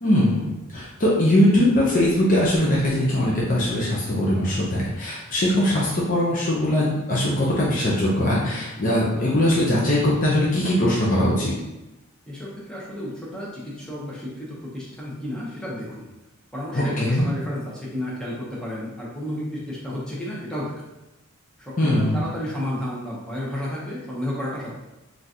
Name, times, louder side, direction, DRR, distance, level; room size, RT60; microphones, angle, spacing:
voice 1, 0.0-0.4 0.7-11.5 16.7-17.3 21.8-22.2, left 1 dB, 40° left, -6 dB, 0.6 m, -21 dB
voice 2, 12.3-16.1 16.5-20.7 21.6-24.7, left 1 dB, 5° left, -6 dB, 0.8 m, -32 dB
3.7 x 2.5 x 2.8 m, 0.99 s
head